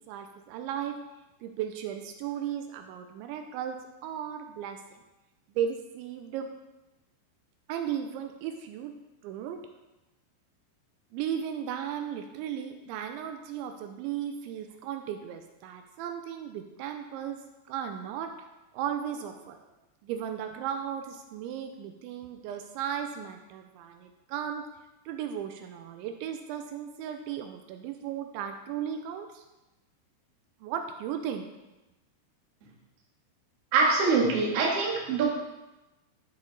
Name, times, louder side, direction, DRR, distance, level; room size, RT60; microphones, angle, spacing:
voice 1, 0.1-1.0 1.4-4.8 5.6-6.5 7.7-8.9 9.2-9.6 11.1-17.4 17.7-18.3 18.7-19.6 20.0-24.7 25.1-29.4 30.6-31.5, right 9 dB, 85° right, 5 dB, 2.9 m, -35 dB
voice 2, 33.7-35.3, right 4 dB, 55° right, -2 dB, 1.7 m, -24 dB
12.0 x 6.3 x 4.0 m, 1.0 s
omnidirectional pair, 5.4 m